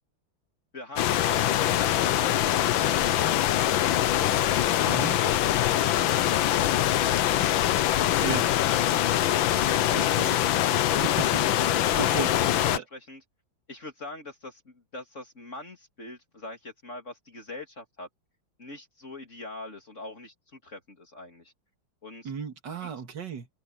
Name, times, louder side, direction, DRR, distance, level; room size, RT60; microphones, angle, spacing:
voice 1, 0.7-3.4 12.1-13.2 13.7-18.1 18.6-21.5 22.0-22.3 22.8-22.9, left 2 dB, 35° left, 3.0 m, -43 dB
sound 1, 1.0-12.8, left 12 dB, 75° left, 1.6 m, -23 dB
voice 2, 4.9-5.2 8.2-8.5 9.9-10.4 11.0-11.5 12.0-12.3 12.7-12.8 22.2-23.5, right 6 dB, 60° right, 2.6 m, -34 dB
open air
omnidirectional pair, 2.2 m